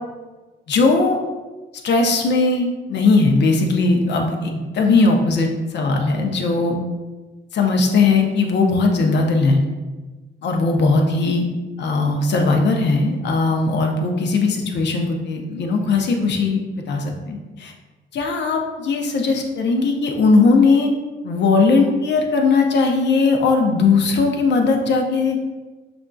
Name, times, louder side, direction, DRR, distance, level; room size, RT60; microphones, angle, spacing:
voice 1, 0.7-1.2 1.8-5.5 5.7-6.7 7.5-9.7 10.4-11.5 11.8-16.6 16.9-17.7 18.1-20.9 21.2-25.4, left 3 dB, 60° left, 2 dB, 0.7 m, -18 dB
5.8 x 2.5 x 2.3 m, 1.2 s
cardioid pair, 90°, 20 cm